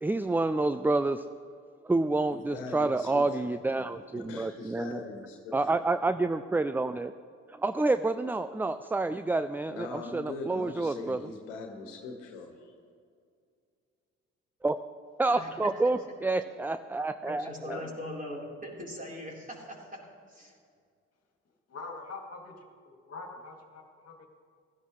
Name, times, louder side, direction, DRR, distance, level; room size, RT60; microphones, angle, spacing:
voice 1, 0.0-1.2 1.8-5.0 5.5-7.1 7.5-11.2 14.6-14.8 15.2-17.8, right 2 dB, 5° right, 11 dB, 0.4 m, -28 dB
voice 2, 2.3-3.8 4.2-5.8 9.7-12.7, left 3 dB, 85° left, 3 dB, 1.6 m, -41 dB
voice 3, 15.3-15.7 17.4-20.0 20.3-20.5, left 1 dB, 20° right, -2 dB, 3.9 m, -41 dB
voice 4, 17.3-17.9 21.7-24.3, left 3 dB, 45° left, 3 dB, 2.2 m, -44 dB
16.5 x 13.5 x 3.2 m, 2.2 s
hypercardioid pair, 45°, 35 cm